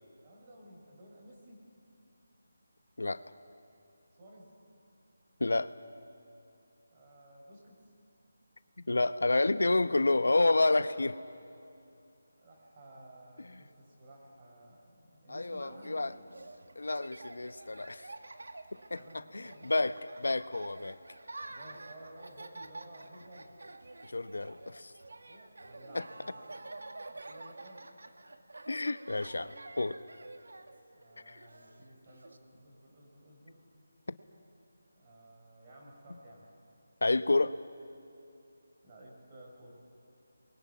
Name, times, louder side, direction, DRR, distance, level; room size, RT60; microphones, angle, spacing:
voice 1, 0.2-1.7 4.2-4.5 6.9-7.9 12.4-16.3 18.9-19.7 21.5-23.6 25.3-26.6 27.1-27.9 30.9-33.6 34.9-36.5 38.8-39.8, right 1 dB, 20° right, -2 dB, 4.3 m, -54 dB
voice 2, 5.4-5.7 8.8-11.2 15.3-16.1 16.8-18.1 18.9-21.0 24.1-24.9 25.9-26.0 28.7-30.0 31.3-31.4 37.0-37.6, left 2 dB, 85° left, 13 dB, 1.0 m, -29 dB
Laughter, 15.6-32.4, right 2 dB, 80° right, 1.8 m, -49 dB
28.0 x 22.0 x 9.4 m, 2.6 s
figure-of-eight pair, 180°, 0 cm